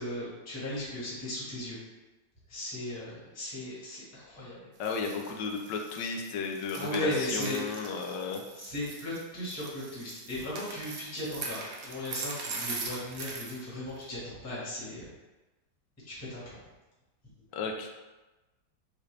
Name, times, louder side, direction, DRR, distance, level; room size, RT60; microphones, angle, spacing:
voice 1, 0.0-1.8 2.5-4.6 6.7-7.6 8.5-15.1 16.0-16.6, left 1 dB, 10° left, -8 dB, 1.2 m, -37 dB
voice 2, 4.8-8.4 17.5-17.9, left 5 dB, 75° left, 2 dB, 1.1 m, -33 dB
sound 1, 4.8-13.6 14.0-14.1, right 3 dB, 90° right, 0.6 m, -41 dB
5.4 x 2.5 x 3.2 m, 1.1 s
omnidirectional pair, 2.1 m